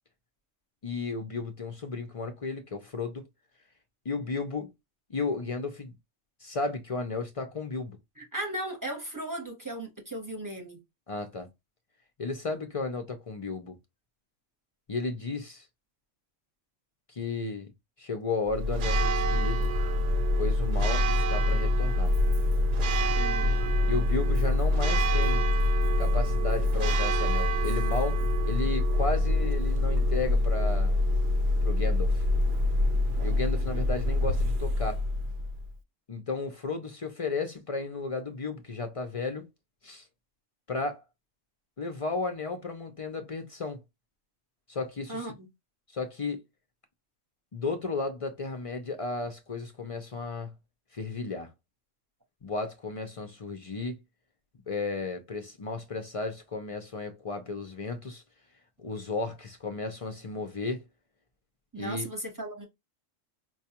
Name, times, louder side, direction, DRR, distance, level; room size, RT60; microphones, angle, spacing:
voice 1, 0.8-3.2 4.1-4.7 5.1-5.9 6.4-8.0 11.1-11.5 12.2-13.8 14.9-15.7 17.1-17.7 18.0-19.7 20.4-22.1 23.9-25.5 26.0-31.0 31.6-32.2 33.2-35.0 36.1-39.4 39.8-40.0 40.7-41.0 41.8-43.8 44.7-45.2 45.9-46.4 47.5-50.5 50.9-51.5 52.4-54.0 54.7-58.2 58.8-60.8 61.8-62.1, left 3 dB, 50° left, 0.4 m, -34 dB
voice 2, 8.2-10.8 23.2-23.6 45.1-45.5 61.7-62.6, right 1 dB, 20° right, 0.8 m, -36 dB
Church bell, 18.5-35.7, left 1 dB, 65° right, 0.5 m, -25 dB
4.6 x 2.3 x 2.8 m
omnidirectional pair, 1.3 m